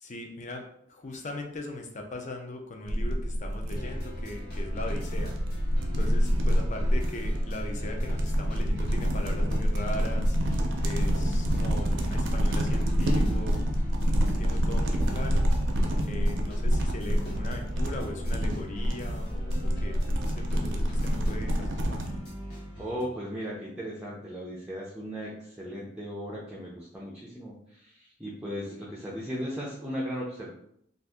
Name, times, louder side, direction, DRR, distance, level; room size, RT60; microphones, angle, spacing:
voice 1, 0.0-5.3 5.7-13.6 14.1-15.5 16.0-22.0, left 2 dB, 40° left, 3 dB, 0.5 m, -39 dB
sound 1, 2.9-22.2, equal, 70° right, 0.5 m, -27 dB
sound 2, 3.7-23.0, equal, 60° left, 1.0 m, -43 dB
voice 2, 22.8-30.5, equal, 5° right, -5 dB, 0.5 m, -37 dB
2.7 x 2.4 x 3.4 m, 0.72 s
head